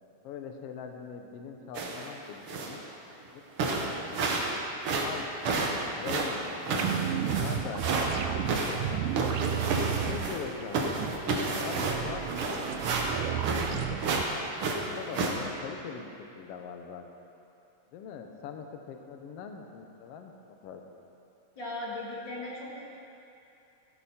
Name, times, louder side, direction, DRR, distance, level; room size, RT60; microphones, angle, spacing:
voice 1, 0.2-2.8 3.3-3.4 3.7-4.3 5.0-7.8 8.2-9.1 9.5-12.7 13.2-14.0 14.7-17.3 17.9-20.8, left 6 dB, 75° left, 4 dB, 1.4 m, -42 dB
sound 1, 1.7-2.1 2.5-2.8 3.3-3.4 3.6-4.5 4.8-8.1 8.5-10.5 10.7-13.7 14.0-14.3 14.6-15.3, right 3 dB, 60° right, 1.6 m, -30 dB
sound 2, 6.8-14.2, right 11 dB, 80° right, 1.9 m, -33 dB
voice 2, 21.6-22.8, left 2 dB, 40° left, -5 dB, 2.0 m, -37 dB
14.5 x 11.0 x 4.3 m, 2.7 s
omnidirectional pair, 3.7 m